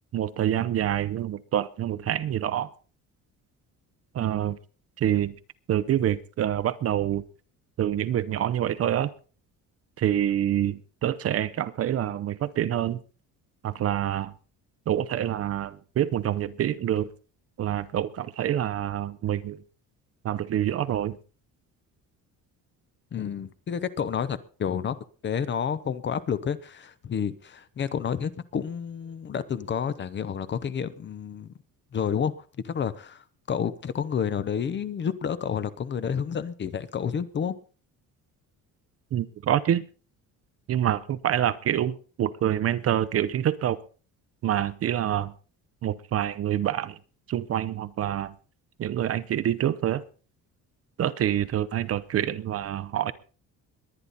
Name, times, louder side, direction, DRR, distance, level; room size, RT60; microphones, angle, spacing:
voice 1, 0.1-2.7 4.1-4.6 5.0-5.3 5.7-7.2 7.8-9.1 10.0-13.0 13.6-14.3 14.9-17.1 17.6-19.6 20.2-21.2 39.1-39.8 40.7-43.8 44.4-45.3 45.8-47.0 47.3-48.3 48.8-50.0 51.0-53.1, right 11 dB, 45° right, 15 dB, 0.7 m, -26 dB
voice 2, 23.1-25.0 25.2-31.5 31.9-32.3 32.6-37.6, left 7 dB, 35° left, 15 dB, 0.8 m, -30 dB
21.5 x 9.9 x 4.1 m, 0.39 s
cardioid pair, 170°, 34 cm